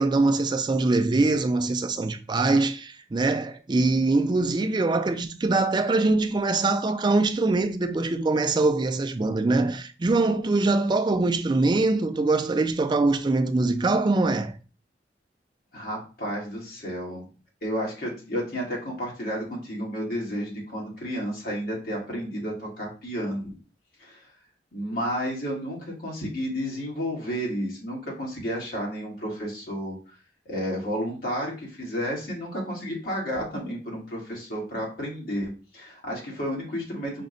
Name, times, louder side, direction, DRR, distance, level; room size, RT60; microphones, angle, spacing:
voice 1, 0.0-14.5, right 3 dB, 25° right, 0.3 m, -23 dB
voice 2, 15.7-17.2 17.6-23.5 24.0-24.2 24.7-30.0 30.4-37.3, equal, 55° left, 1.6 m, -31 dB
5.1 x 2.2 x 3.8 m
head